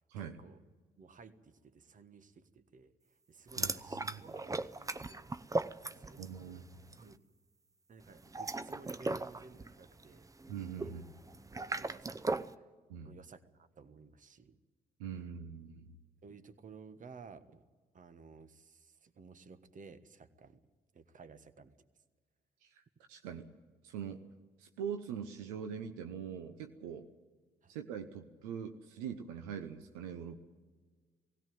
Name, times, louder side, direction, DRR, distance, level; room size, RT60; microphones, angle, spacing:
voice 1, 1.0-2.9 3.3-5.4 5.9-6.6 7.0-7.2 7.9-10.3 10.8-11.0 11.5-12.5 13.0-14.6 16.2-17.6 17.9-20.6 20.9-21.7 27.6-27.7, right 5 dB, 50° right, 11 dB, 1.4 m, -55 dB
sound 1, 3.5-6.4 6.7-7.0 8.2-12.5, right 2 dB, 20° right, 0.8 m, -38 dB
voice 2, 3.6-4.2 6.2-6.6 10.5-11.0 12.9-13.2 15.0-15.9 22.6-22.8 23.1-23.5 23.8-24.2 24.6-27.1 27.7-30.4, right 7 dB, 90° right, 6 dB, 0.8 m, -43 dB
18.0 x 16.5 x 9.3 m, 1.4 s
hypercardioid pair, 50°, 17 cm